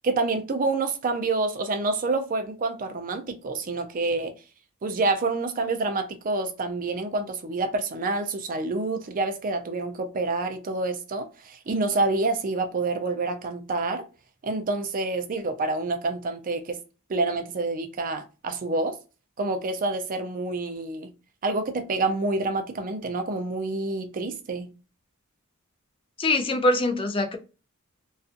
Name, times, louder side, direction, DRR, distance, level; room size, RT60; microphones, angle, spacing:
voice 1, 0.0-4.3 4.8-14.0 14.4-16.8 17.1-19.0 19.4-21.1 21.4-24.7, right 3 dB, 40° right, 0.4 m, -27 dB
voice 2, 26.2-27.4, left 2 dB, 25° left, 0.4 m, -23 dB
2.5 x 2.3 x 2.4 m
head